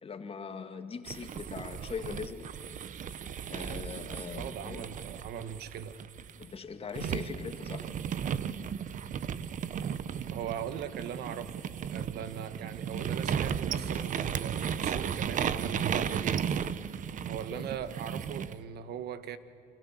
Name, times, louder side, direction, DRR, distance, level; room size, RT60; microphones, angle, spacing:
voice 1, 0.0-2.5 3.5-4.9 6.4-7.9 17.5-17.7, left 5 dB, 35° left, 7 dB, 2.0 m, -41 dB
sound 1, 1.1-6.5 6.9-18.6, right 8 dB, 50° right, 1.0 m, -35 dB
voice 2, 4.3-6.0 10.3-11.6 11.9-16.5 17.3-19.4, right 8 dB, 75° right, 12 dB, 1.5 m, -40 dB
29.0 x 25.0 x 7.4 m, 2.7 s
cardioid pair, 110°, 17 cm